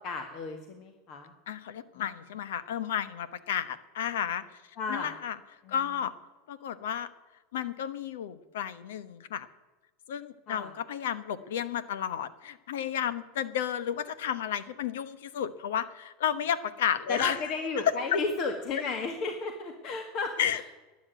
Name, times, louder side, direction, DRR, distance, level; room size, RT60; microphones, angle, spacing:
voice 1, 0.0-1.3 4.8-5.1 5.6-5.7 10.5-10.7 17.1-20.6, left 4 dB, 50° left, 5 dB, 1.8 m, -33 dB
voice 2, 1.5-4.4 4.9-5.4 5.7-6.1 6.5-7.1 7.5-9.5 10.1-17.4 17.8-17.9 20.4-20.6, left 9 dB, 75° left, 15 dB, 1.0 m, -32 dB
12.0 x 9.6 x 9.2 m, 1.2 s
hypercardioid pair, 100°, 0 cm